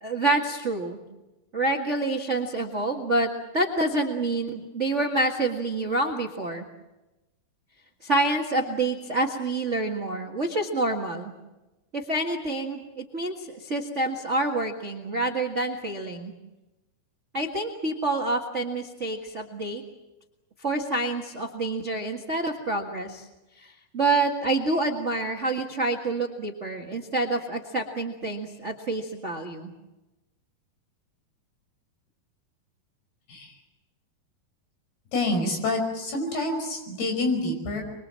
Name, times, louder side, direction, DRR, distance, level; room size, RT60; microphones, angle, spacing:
voice 1, 0.0-1.0 1.5-6.6 8.0-11.3 11.9-16.3 17.3-19.8 20.6-23.2 23.6-29.7, right 2 dB, 70° right, 2 dB, 0.6 m, -27 dB
voice 2, 35.1-37.8, left 2 dB, 85° left, 4 dB, 7.3 m, -27 dB
24.5 x 23.0 x 7.6 m, 1.0 s
omnidirectional pair, 4.4 m